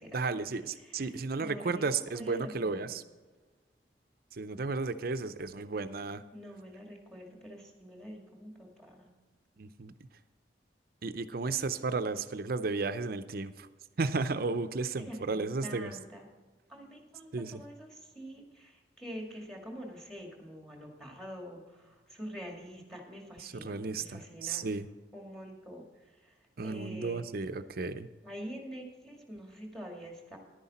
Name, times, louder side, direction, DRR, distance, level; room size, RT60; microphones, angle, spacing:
voice 1, 0.1-3.0 4.4-6.2 9.6-9.9 11.0-13.7 14.0-15.9 17.3-17.6 23.4-24.9 26.6-28.1, right 4 dB, 55° right, 12 dB, 0.6 m, -33 dB
voice 2, 0.8-1.9 2.1-3.0 6.3-9.1 15.0-16.3 16.7-24.6 25.1-25.9 26.2-26.3 26.6-27.2 28.2-30.4, equal, 5° left, 1 dB, 2.0 m, -46 dB
11.0 x 9.7 x 4.2 m, 1.3 s
head